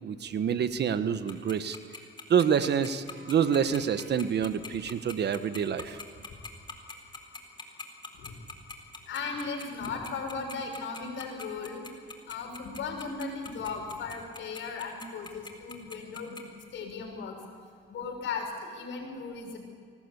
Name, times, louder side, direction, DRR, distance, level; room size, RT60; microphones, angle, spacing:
voice 1, 0.0-1.8 2.3-6.0, right 7 dB, 60° right, 11 dB, 1.4 m, -27 dB
Tick-tock, 1.3-16.4, left 3 dB, 25° left, 4.0 m, -42 dB
voice 2, 9.1-11.9 12.3-16.4 16.7-17.3 17.9-19.6, left 4 dB, 75° left, 3 dB, 6.4 m, -36 dB
25.5 x 19.5 x 8.4 m, 2.1 s
cardioid pair, 90°, 20 cm